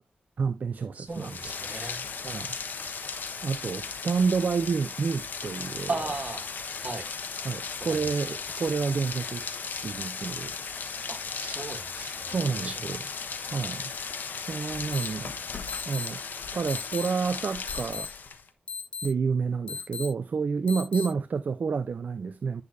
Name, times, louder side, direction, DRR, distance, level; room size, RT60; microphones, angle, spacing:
voice 1, 0.4-1.4 2.2-2.6 3.4-6.0 7.4-9.5 9.8-10.6 12.3-13.0 13.5-13.9 14.4-15.3 15.9-16.2 16.5-18.1 19.0-22.6, right 5 dB, 60° right, 0.6 m, -29 dB
voice 2, 0.9-2.0 2.9-3.0 5.9-6.5 6.8-7.1 7.9-8.0 8.5-8.6 11.1-12.8, right 3 dB, 40° right, 2.5 m, -36 dB
Rain, 1.1-18.5, left 5 dB, 75° left, 1.2 m, -36 dB
sound 1, 14.9-15.1 15.7-16.1 16.7-17.1 17.7-18.1 18.7-19.1 19.7-20.1 20.7-21.1, left 5 dB, 35° left, 2.0 m, -35 dB
10.5 x 6.7 x 2.7 m
wide cardioid pair, 100°, 3 cm